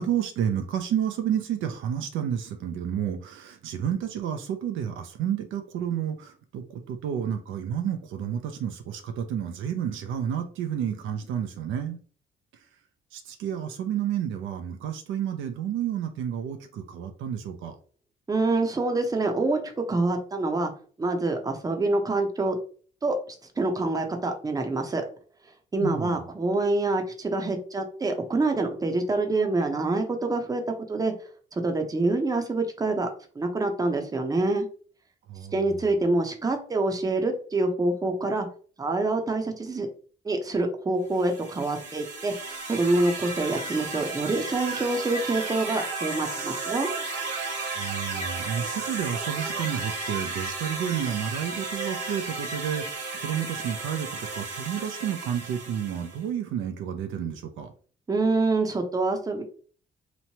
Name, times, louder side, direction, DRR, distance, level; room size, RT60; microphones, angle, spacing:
voice 1, 0.0-12.0 13.1-17.7 25.8-26.1 35.3-35.6 47.8-57.7, right 9 dB, 85° right, 0.5 m, -30 dB
voice 2, 18.3-19.6 19.9-20.7 21.0-22.6 23.0-23.2 23.6-25.0 25.7-30.6 30.9-31.1 31.5-33.1 33.4-34.6 35.5-38.5 38.8-39.9 40.2-42.3 42.7-46.9 58.1-59.4, right 2 dB, 20° right, 0.6 m, -26 dB
sound 1, 41.1-56.2, right 3 dB, 55° right, 1.0 m, -34 dB
3.1 x 2.1 x 2.7 m
cardioid pair, 90°, 20 cm